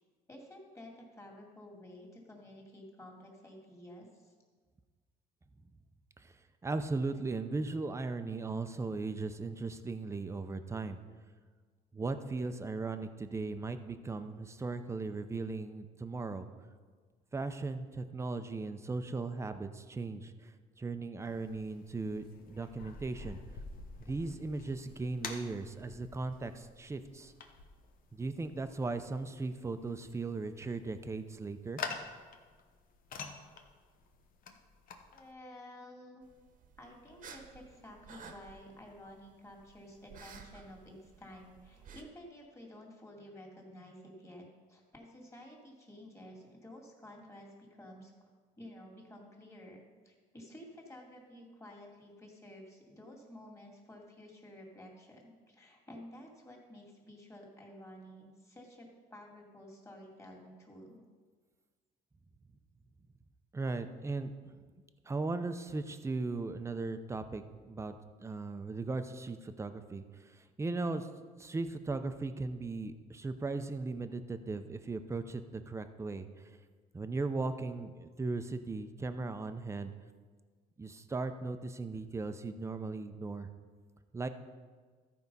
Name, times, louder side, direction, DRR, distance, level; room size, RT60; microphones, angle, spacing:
voice 1, 0.3-4.3 35.1-36.3 36.8-48.1 48.6-61.0, left 1 dB, 15° left, -1 dB, 2.2 m, -52 dB
voice 2, 6.6-11.0 11.9-16.5 17.3-23.4 24.0-27.3 28.1-31.8 63.5-64.6 65.0-71.1 71.4-76.6 76.9-79.9 80.8-83.5 84.1-84.3, right 3 dB, 15° right, 9 dB, 0.6 m, -38 dB
sound 1, 21.2-35.3, left 5 dB, 55° left, 1.0 m, -48 dB
sound 2, 36.2-42.0, right 6 dB, 55° right, 1.1 m, -54 dB
14.0 x 4.7 x 5.4 m, 1.5 s
cardioid pair, 110°, 17 cm